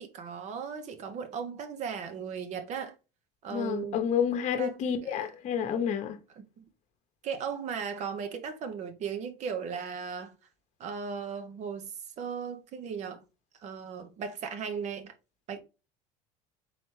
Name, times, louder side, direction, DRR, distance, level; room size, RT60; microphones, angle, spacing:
voice 1, 0.0-2.9 3.4-4.0 4.6-4.8 5.0-5.3 6.3-6.6 7.2-10.3 10.8-13.2 13.6-15.1 15.5-15.6, right 6 dB, 50° right, 0.8 m, -37 dB
voice 2, 3.5-6.2, left 8 dB, 50° left, 0.9 m, -29 dB
4.0 x 3.3 x 3.2 m
supercardioid pair, 100°, 15 cm